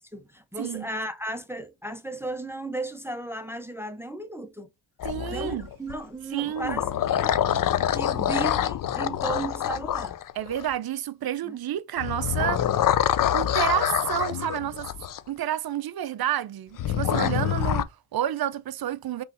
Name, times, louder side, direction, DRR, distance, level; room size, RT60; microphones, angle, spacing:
voice 1, 0.1-4.7 5.3-7.4 7.9-10.2 11.4-11.6, right 2 dB, 5° right, 0.6 m, -35 dB
sound 1, 5.0-6.0 6.5-10.7 12.0-15.2 16.8-17.8, left 10 dB, 45° left, 0.5 m, -26 dB
voice 2, 5.0-5.7 6.3-6.8 10.4-12.7 13.3-14.9 15.3-19.2, right 11 dB, 50° right, 0.5 m, -30 dB
5.4 x 3.2 x 2.6 m
cardioid pair, 65°, 49 cm